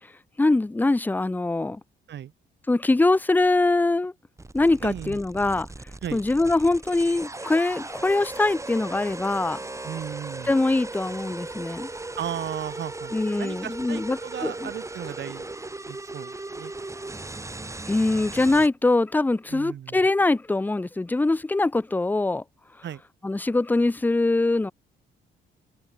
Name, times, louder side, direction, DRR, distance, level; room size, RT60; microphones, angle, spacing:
voice 1, 0.4-1.8 2.7-4.1 4.5-5.7 6.1-9.6 10.4-11.9 13.1-14.7 17.9-22.4 23.2-24.7, left 2 dB, 10° left, 0.5 m, -23 dB
sound 1, 4.4-18.7, right 2 dB, 15° right, 2.0 m, -37 dB
voice 2, 4.8-5.2 6.0-6.2 9.8-10.5 12.2-15.4 15.9-16.7 19.5-20.0 22.8-23.0, right 10 dB, 65° right, 2.5 m, -35 dB
open air
cardioid pair, 90°, 20 cm